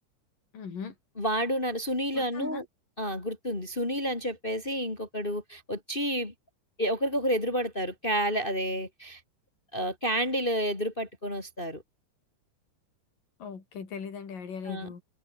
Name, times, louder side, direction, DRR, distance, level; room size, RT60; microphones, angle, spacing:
voice 1, 0.5-0.9 2.1-2.7 13.4-15.0, left 6 dB, 90° left, 5.8 m, -39 dB
voice 2, 1.2-2.6 3.0-6.3 6.8-9.2 9.7-11.8 14.7-14.9, equal, 15° left, 2.4 m, -30 dB
omnidirectional pair, 3.8 m